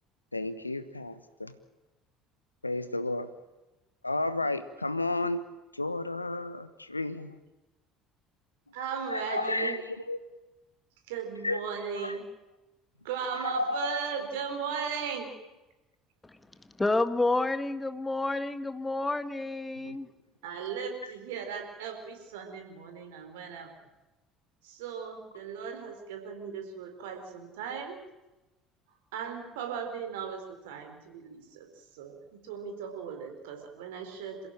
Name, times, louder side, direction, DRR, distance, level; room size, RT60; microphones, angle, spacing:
voice 1, 0.3-1.5 2.6-3.3 4.0-5.4 5.7-7.4 9.1-10.2 11.4-11.6 11.9-12.2 13.3-14.0 19.8-20.0, left 2 dB, 90° left, 1.1 m, -32 dB
voice 2, 8.7-9.8 11.1-12.3 13.0-15.3 20.4-23.7 24.6-28.0 29.1-31.7 31.9-34.5, right 6 dB, 70° right, 4.3 m, -37 dB
voice 3, 16.8-20.1, left 2 dB, 15° left, 1.7 m, -29 dB
27.5 x 16.0 x 9.0 m
figure-of-eight pair, 60°, 0 cm